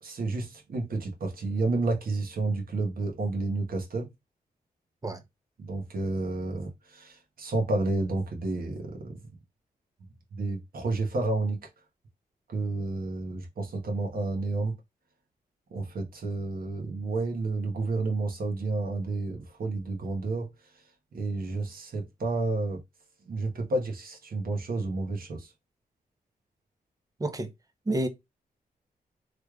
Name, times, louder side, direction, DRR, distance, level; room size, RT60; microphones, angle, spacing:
voice 1, 0.0-4.1 5.6-9.1 10.3-11.6 12.5-14.7 15.7-20.5 21.1-22.8 23.3-25.5, right 3 dB, 65° right, 1.2 m, -30 dB
voice 2, 27.2-27.5 27.9-28.1, right 2 dB, 20° right, 0.7 m, -28 dB
3.2 x 3.2 x 2.3 m
cardioid pair, 80°, 16 cm